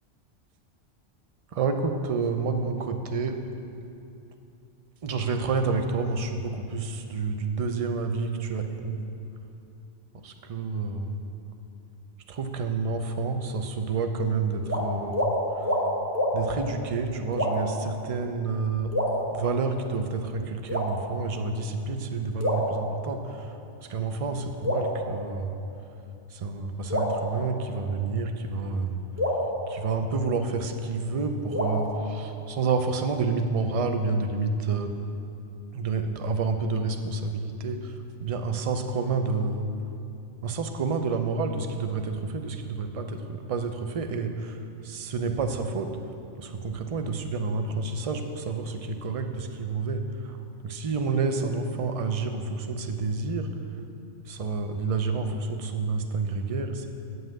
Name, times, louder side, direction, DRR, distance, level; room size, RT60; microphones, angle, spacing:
voice 1, 1.5-3.4 5.0-9.1 10.1-11.2 12.3-15.2 15.5-15.8 16.3-18.9 19.3-23.6 23.9-25.6 26.3-29.0 29.7-34.9 35.7-39.7 40.4-46.0 46.4-50.4 50.6-53.5 54.3-56.9, right 4 dB, 40° right, 6 dB, 0.5 m, -29 dB
sound 1, 14.6-14.8 15.1-15.3 15.6-15.8 16.1-16.3 17.3-17.8 18.9-19.8 20.7-21.4 22.4-23.4 24.6-25.8 26.9-28.1 29.2-30.6 31.5-32.7, equal, 15° right, 1.3 m, -29 dB
9.5 x 5.6 x 7.5 m, 2.7 s
omnidirectional pair, 1.2 m